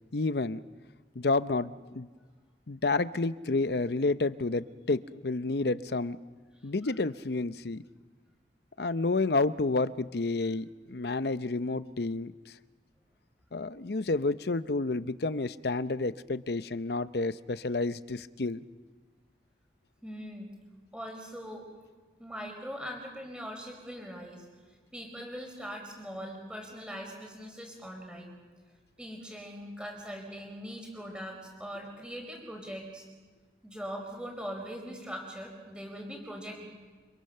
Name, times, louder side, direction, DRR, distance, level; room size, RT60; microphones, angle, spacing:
voice 1, 0.1-0.6 1.1-2.1 2.7-6.2 6.6-7.8 8.8-12.3 13.5-18.6, left 3 dB, 65° left, 14 dB, 0.7 m, -30 dB
voice 2, 6.6-6.9 20.0-20.5 20.9-21.7 22.2-24.5 24.9-28.3 29.0-33.0 33.6-36.7, equal, 5° right, 2 dB, 5.1 m, -41 dB
27.5 x 26.0 x 6.7 m, 1.4 s
head